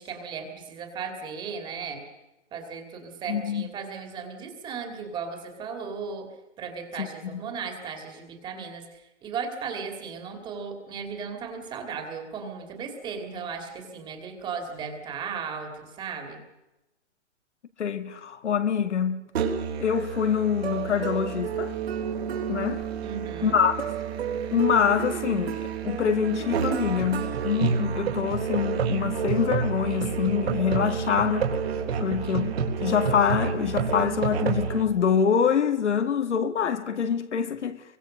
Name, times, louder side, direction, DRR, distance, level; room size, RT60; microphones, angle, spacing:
voice 1, 0.0-2.0 2.5-6.3 6.6-16.4 23.0-23.6 31.7-32.2, right 5 dB, 15° right, 2.6 m, -36 dB
voice 2, 3.3-3.7 7.0-7.4 17.8-19.3 19.8-21.7 22.5-22.8 23.4-23.8 24.5-31.5 32.0-37.8, left 7 dB, 75° left, 2.2 m, -25 dB
Musical instrument, 19.4-34.8, right 6 dB, 60° right, 3.7 m, -29 dB
25.0 x 24.0 x 6.5 m
hypercardioid pair, 165°, 35 cm